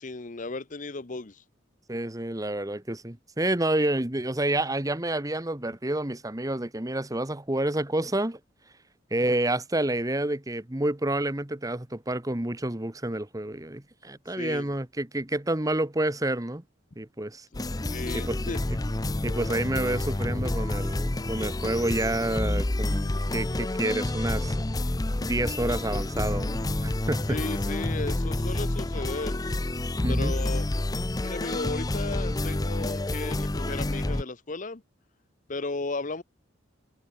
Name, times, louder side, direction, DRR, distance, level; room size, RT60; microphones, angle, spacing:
voice 1, 0.0-1.4 14.4-14.7 17.5-18.7 27.3-29.4 30.1-30.7 31.2-34.8 35.5-36.2, left 3 dB, 40° left, 0.9 m, -35 dB
voice 2, 1.9-8.4 9.1-16.6 17.0-17.5 18.1-18.4 19.2-24.6 25.2-27.4 30.0-30.3, right 1 dB, 15° right, 1.2 m, -29 dB
sound 1, 17.5-34.2, left 1 dB, 20° left, 0.6 m, -29 dB
head